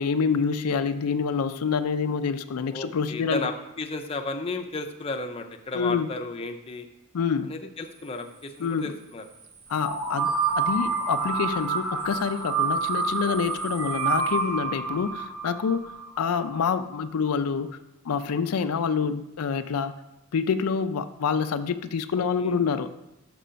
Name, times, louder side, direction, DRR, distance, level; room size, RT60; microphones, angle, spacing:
voice 1, 0.0-3.4 5.7-6.1 7.1-7.5 8.6-8.9 9.7-15.9 16.2-17.8 18.1-19.9 20.3-22.9, left 6 dB, 85° left, 10 dB, 0.4 m, -27 dB
voice 2, 2.7-6.9 7.5-9.2 22.4-22.6, left 3 dB, 25° left, 4 dB, 0.5 m, -33 dB
sound 1, 9.8-16.6, right 4 dB, 85° right, 1.0 m, -28 dB
6.1 x 5.1 x 5.6 m, 0.89 s
head